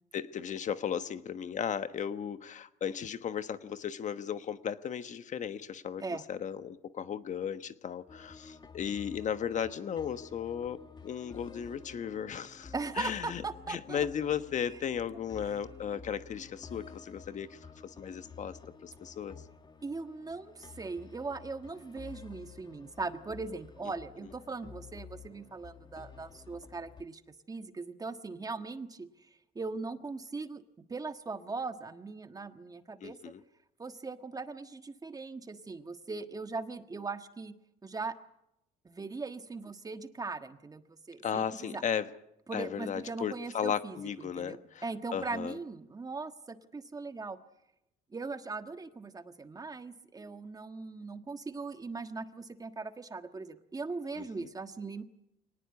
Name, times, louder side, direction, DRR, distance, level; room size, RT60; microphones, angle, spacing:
voice 1, 0.1-13.4 13.7-19.3 33.0-33.4 41.2-42.0 42.5-44.8 45.1-45.5 54.2-54.5, left 8 dB, 45° left, 11 dB, 1.2 m, -36 dB
sound 1, 8.1-27.0, left 5 dB, 25° left, 1.9 m, -51 dB
voice 2, 12.7-14.1 19.8-27.2 27.5-29.3 29.5-30.6 30.9-33.3 33.8-37.5 37.8-38.2 38.8-41.8 42.5-47.4 48.1-55.0, right 3 dB, 20° right, 9 dB, 1.5 m, -40 dB
24.0 x 19.0 x 9.8 m, 0.84 s
cardioid pair, 110°, 17 cm